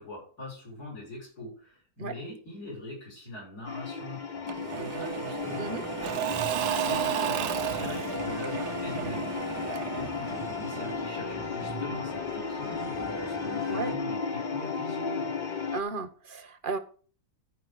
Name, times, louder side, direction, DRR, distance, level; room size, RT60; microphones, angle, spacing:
voice 1, 0.0-15.3, left 1 dB, 65° left, -4 dB, 7.1 m, -42 dB
sound 1, 3.7-15.8, left 5 dB, 45° left, 0.6 m, -35 dB
Engine / Mechanisms / Drill, 4.5-11.2, right 12 dB, 75° right, 1.2 m, -33 dB
sound 2, 5.4-14.0, right 1 dB, 10° right, 1.2 m, -41 dB
voice 2, 15.7-16.8, right 4 dB, 35° right, 9 dB, 1.1 m, -34 dB
13.5 x 5.2 x 6.3 m, 0.41 s
omnidirectional pair, 1.8 m